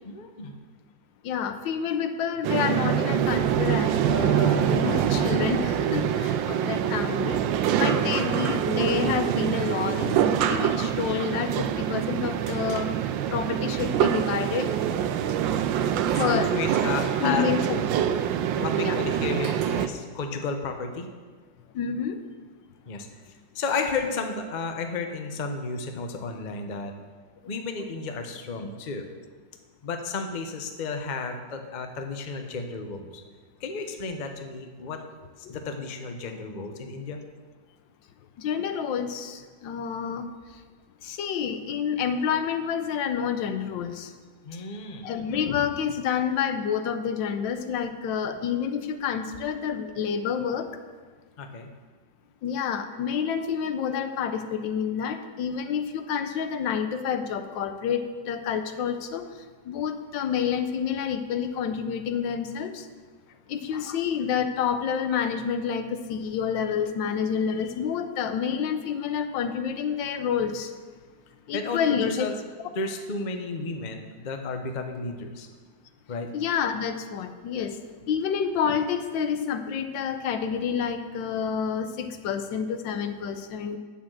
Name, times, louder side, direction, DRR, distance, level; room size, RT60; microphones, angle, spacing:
voice 1, 0.0-0.5 7.8-8.1 16.1-17.5 18.6-21.1 22.9-23.1 23.5-26.9 27.5-29.1 29.8-33.2 33.6-35.0 35.4-37.2 44.4-45.1 51.4-51.7 71.5-72.3 72.7-75.5 76.1-76.3, left 4 dB, 40° left, 5 dB, 0.6 m, -32 dB
voice 2, 1.2-7.4 7.8-11.5 11.8-12.9 13.3-14.7 16.2-16.5 17.2-18.1 18.7-19.0 21.7-22.2 38.4-40.2 41.0-44.1 45.0-50.7 52.4-59.2 59.7-62.8 63.5-70.7 71.5-72.3 76.3-77.7 78.1-83.8, left 7 dB, 85° left, 9 dB, 1.4 m, -28 dB
sound 1, 2.4-19.9, right 9 dB, 80° right, 1.3 m, -25 dB
8.8 x 7.0 x 7.5 m, 1.5 s
omnidirectional pair, 2.0 m